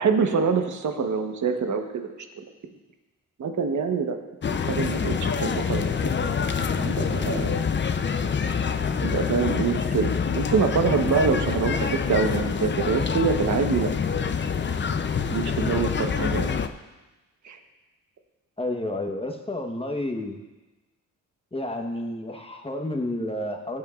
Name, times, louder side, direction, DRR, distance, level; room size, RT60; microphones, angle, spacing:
voice 1, 0.0-2.1 3.4-4.2 4.7-6.1 6.7-7.6 8.4-8.6 9.0-13.9 14.2-14.3 15.3-16.6 17.4-17.6, right 5 dB, 65° right, 5 dB, 1.1 m, -25 dB
sound 1, 4.4-16.7, left 6 dB, 35° left, 0.6 m, -26 dB
voice 2, 18.6-20.4 21.5-23.8, left 1 dB, 20° left, 4 dB, 1.1 m, -30 dB
15.5 x 9.6 x 2.4 m, 1.1 s
cardioid pair, 75°, 31 cm